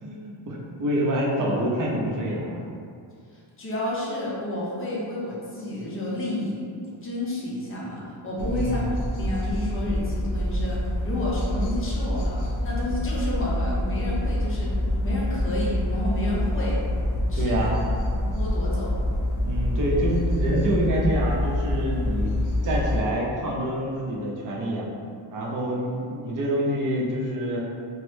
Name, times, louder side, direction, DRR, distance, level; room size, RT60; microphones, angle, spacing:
voice 1, 0.0-2.6 8.4-9.0 17.3-17.8 19.4-22.4 22.6-24.9 25.3-27.6, right 1 dB, 40° right, -3 dB, 0.6 m, -27 dB
voice 2, 3.6-6.6 7.0-8.9 9.2-14.7 15.0-16.8 17.3-17.8 18.2-19.0, left 1 dB, 25° left, -5 dB, 0.6 m, -30 dB
sound 1, 8.4-23.0, left 1 dB, 70° left, 0.6 m, -26 dB
3.0 x 2.1 x 3.1 m, 2.3 s
cardioid pair, 135°, 48 cm